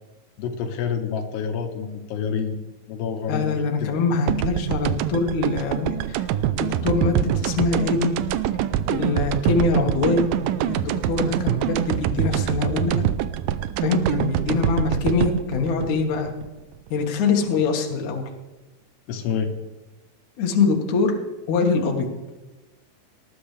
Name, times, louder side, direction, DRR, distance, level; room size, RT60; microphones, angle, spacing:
voice 1, 0.4-2.6 2.9-3.9 19.1-19.5, left 6 dB, 90° left, 5 dB, 3.3 m, -28 dB
voice 2, 3.3-6.2 6.6-8.2 8.9-10.3 10.7-13.0 13.8-16.3 16.9-18.3 20.4-21.2 21.5-22.1, left 4 dB, 55° left, 2 dB, 2.6 m, -23 dB
sound 1, 4.3-17.1, right 11 dB, 85° right, 2.0 m, -25 dB
19.0 x 12.5 x 3.3 m, 1.1 s
omnidirectional pair, 4.6 m